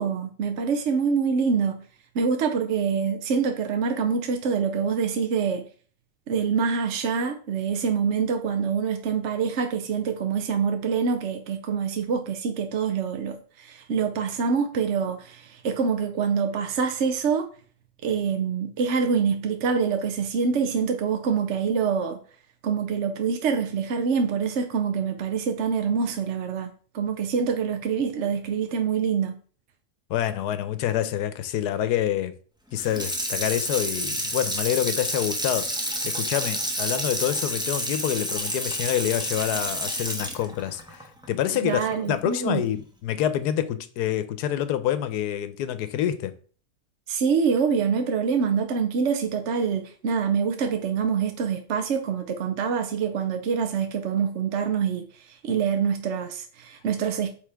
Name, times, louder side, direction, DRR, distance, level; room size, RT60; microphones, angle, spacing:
voice 1, 0.0-1.8 2.1-5.6 6.3-17.5 18.0-22.2 22.6-29.4 41.6-42.6 47.1-57.3, right 6 dB, 60° right, 0.8 m, -25 dB
voice 2, 30.1-32.3 32.7-35.7 36.0-46.3, left 11 dB, 90° left, 1.2 m, -27 dB
Water tap faucet / Sink (filling or washing), 32.8-42.0 42.4-42.5, equal, 5° right, 0.5 m, -29 dB
8.3 x 3.5 x 3.4 m
omnidirectional pair, 1.7 m